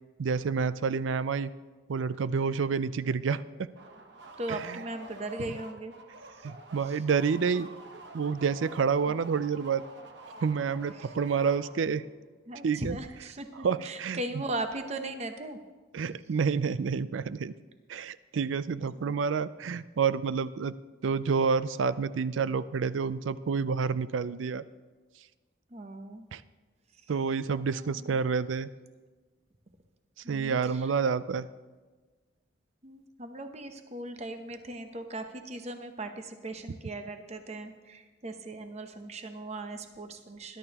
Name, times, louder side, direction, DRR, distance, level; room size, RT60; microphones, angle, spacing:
voice 1, 0.2-1.5 1.9-3.7 4.5-4.8 6.4-7.7 8.1-9.8 10.4-12.0 12.6-13.0 13.6-14.2 15.9-17.5 17.9-20.7 21.0-24.6 26.3-26.4 27.1-28.7 30.3-31.5, right 5 dB, 90° right, 16 dB, 0.4 m, -29 dB
sound 1, 3.7-12.1, right 2 dB, 65° right, 1.1 m, -48 dB
voice 2, 4.4-5.9 6.4-6.5 6.9-7.0 10.9-11.1 12.5-15.6 18.7-19.1 25.7-26.3 27.7-28.2 30.2-31.2 32.8-40.6, right 2 dB, 35° right, 7 dB, 0.8 m, -39 dB
20.0 x 11.5 x 2.9 m, 1.3 s
head